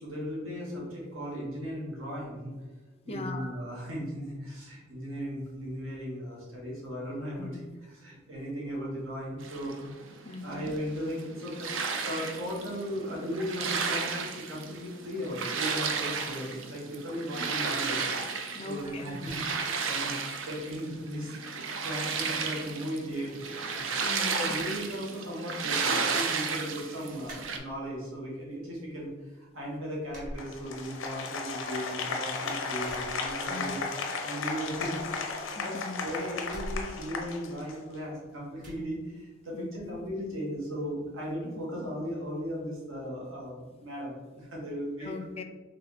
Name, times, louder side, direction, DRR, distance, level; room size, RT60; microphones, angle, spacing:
voice 1, 0.0-2.6 3.0-7.5 7.9-10.1 10.4-18.0 18.6-23.7 24.4-35.7 36.0-45.1, equal, 90° right, -4 dB, 1.4 m, -37 dB
voice 2, 3.1-3.5 7.4-7.8 10.2-10.7 18.5-19.3 24.0-24.5 33.5-33.8 35.5-36.2 39.5-40.0 45.0-45.4, left 3 dB, 30° left, 8 dB, 0.3 m, -40 dB
sound 1, 9.4-27.6, right 5 dB, 70° right, 0.5 m, -33 dB
sound 2, 27.2-28.1 28.5-29.2 29.5-29.6 30.1-31.2 31.5-32.3 32.7-33.9 34.2-34.3 34.6-35.8 36.4-38.1 38.6-38.9, equal, 45° right, 1.4 m, -45 dB
Applause, 30.4-37.9, left 4 dB, 90° left, 0.6 m, -35 dB
3.4 x 3.3 x 3.9 m, 1.2 s
head